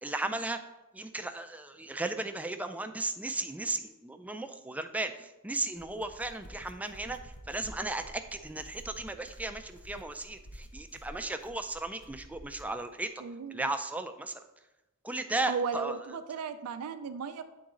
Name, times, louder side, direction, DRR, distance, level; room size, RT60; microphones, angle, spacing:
voice 1, 0.0-0.6 0.9-13.1 13.5-14.4 15.0-16.0, right 2 dB, 5° right, 8 dB, 0.3 m, -35 dB
sound 1, 5.6-12.8, equal, 55° left, 0.7 m, -50 dB
voice 2, 13.2-13.7 15.5-17.4, right 5 dB, 85° right, 9 dB, 0.4 m, -35 dB
8.6 x 3.9 x 3.7 m, 1.0 s
head